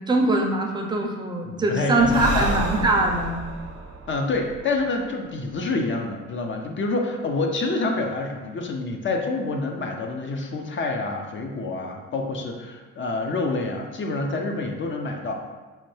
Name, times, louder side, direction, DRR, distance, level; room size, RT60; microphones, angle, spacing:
voice 1, 0.0-3.4, right 2 dB, 15° right, 1 dB, 0.5 m, -22 dB
voice 2, 1.4-2.6 4.1-15.3, left 3 dB, 40° left, 2 dB, 0.5 m, -27 dB
Breathing, 2.0-5.5, right 3 dB, 55° right, 0.6 m, -31 dB
4.2 x 2.2 x 3.1 m, 1.3 s
cardioid pair, 90°, 30 cm